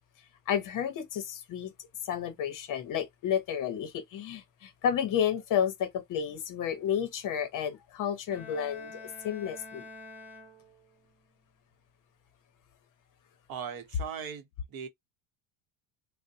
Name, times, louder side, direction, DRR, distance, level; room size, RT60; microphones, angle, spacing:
voice 1, 0.5-1.7 2.1-9.8, left 8 dB, 45° left, 0.7 m, -31 dB
Bowed string instrument, 8.3-11.0, left 2 dB, 5° right, 0.5 m, -47 dB
voice 2, 13.5-14.9, right 7 dB, 50° right, 0.8 m, -39 dB
3.7 x 2.1 x 2.6 m
cardioid pair, 140°, 46 cm